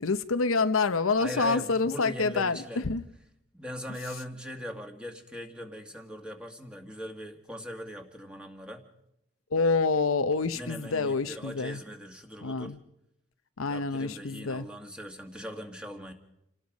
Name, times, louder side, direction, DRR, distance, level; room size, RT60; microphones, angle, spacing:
voice 1, 0.0-3.0 9.5-11.8 12.4-12.8 13.6-14.7, left 4 dB, 80° left, 0.8 m, -27 dB
voice 2, 1.2-2.9 3.5-8.8 10.5-12.7 13.7-16.1, equal, 5° right, 2.0 m, -40 dB
28.5 x 19.0 x 5.3 m
head